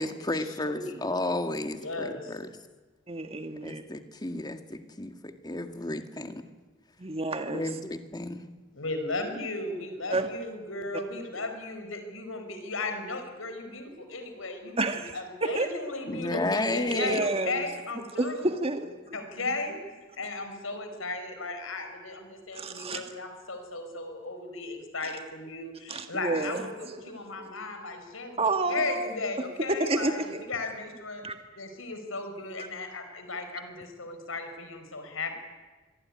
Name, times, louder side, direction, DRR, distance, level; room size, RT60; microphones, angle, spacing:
voice 1, 0.0-2.5 3.6-6.4 7.5-8.5 16.1-17.3, left 2 dB, 20° left, 7 dB, 1.9 m, -32 dB
voice 2, 0.6-1.0 1.8-2.4 8.7-14.8 15.1-18.5 19.1-19.8 20.2-28.4 28.7-31.2 31.6-35.3, left 2 dB, 85° left, 7 dB, 4.8 m, -35 dB
voice 3, 3.1-3.8 7.0-7.6 10.1-10.3 10.9-11.0 14.8-15.7 16.9-17.7 18.2-18.9 22.5-23.1 25.0-25.2 25.9-27.5 28.4-29.1 29.4-30.4 31.2-31.4 32.6-32.7, right 2 dB, 30° right, 6 dB, 1.7 m, -30 dB
26.0 x 23.0 x 9.8 m, 1.3 s
head